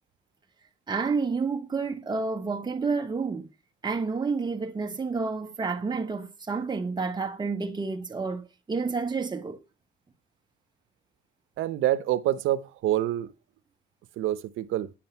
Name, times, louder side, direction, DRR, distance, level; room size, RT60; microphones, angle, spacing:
voice 1, 0.9-3.5 3.8-9.6, right 4 dB, 20° right, 1.2 m, -29 dB
voice 2, 11.6-13.3 14.2-14.9, right 13 dB, 85° right, 0.7 m, -26 dB
9.9 x 7.6 x 5.6 m
cardioid pair, 130°, 20 cm